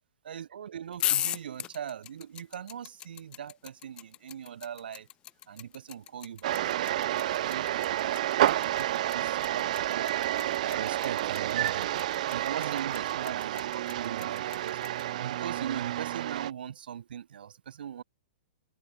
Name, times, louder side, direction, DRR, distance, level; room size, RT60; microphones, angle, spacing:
voice 1, 0.2-5.1 5.5-10.2 10.5-11.9 12.3-18.0, right 9 dB, 70° right, 4.9 m, -40 dB
sound 1, 0.9-15.0, left 12 dB, 15° left, 1.2 m, -36 dB
sound 2, 6.4-16.5, right 13 dB, 45° right, 2.0 m, -30 dB
hypercardioid pair, 170°, 5 cm